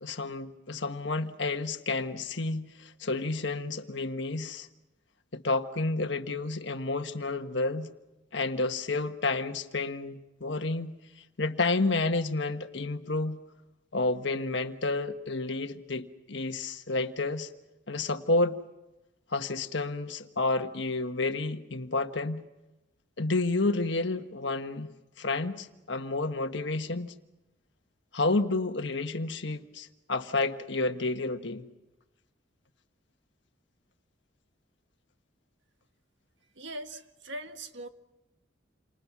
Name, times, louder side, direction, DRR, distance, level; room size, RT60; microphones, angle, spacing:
voice 1, 0.0-4.7 5.3-7.9 8.3-11.0 11.4-13.4 13.9-17.5 17.9-18.6 19.3-22.4 23.2-24.9 25.2-27.1 28.1-31.7, left 3 dB, 70° left, 1.4 m, -30 dB
voice 2, 36.6-37.9, right 1 dB, 70° right, 1.8 m, -40 dB
29.0 x 26.0 x 6.2 m
head